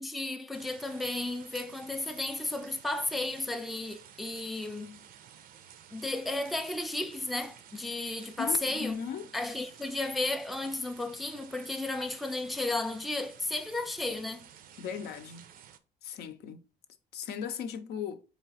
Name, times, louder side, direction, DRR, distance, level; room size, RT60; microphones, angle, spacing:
voice 1, 0.0-5.0 5.9-9.0 9.3-14.5, left 2 dB, ahead, 0.4 m, -33 dB
sound 1, 0.5-15.8, right 9 dB, 60° right, 0.5 m, -53 dB
voice 2, 8.4-9.3 14.8-15.5 16.0-16.7 17.1-18.2, left 7 dB, 70° left, 0.6 m, -37 dB
4.0 x 3.3 x 4.0 m
cardioid pair, 110°, 17 cm